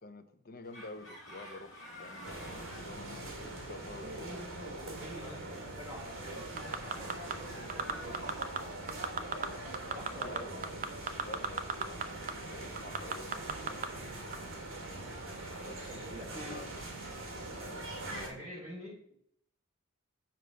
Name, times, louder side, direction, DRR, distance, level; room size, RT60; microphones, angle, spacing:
voice 1, 0.0-4.4 4.6-4.7 10.1-10.6 11.2-13.3 15.6-16.1 16.5-16.7 18.0-18.4, left 2 dB, 40° left, 8 dB, 0.7 m, -49 dB
sound 1, 0.6-8.6, left 1 dB, 60° left, 2.1 m, -52 dB
sound 2, 2.2-18.3, right 2 dB, 70° right, 2.2 m, -43 dB
voice 2, 3.2-4.4 4.8-8.3 9.9-10.5 13.9-14.2 15.9-16.6 18.2-19.1, equal, 15° right, -5 dB, 2.7 m, -48 dB
sound 3, 6.6-7.3 7.7-8.6 8.9-9.5 9.7-12.0 12.3-12.4 12.8-13.9 14.3-14.4, right 6 dB, 40° right, 0.6 m, -33 dB
7.6 x 3.9 x 6.4 m, 0.68 s
head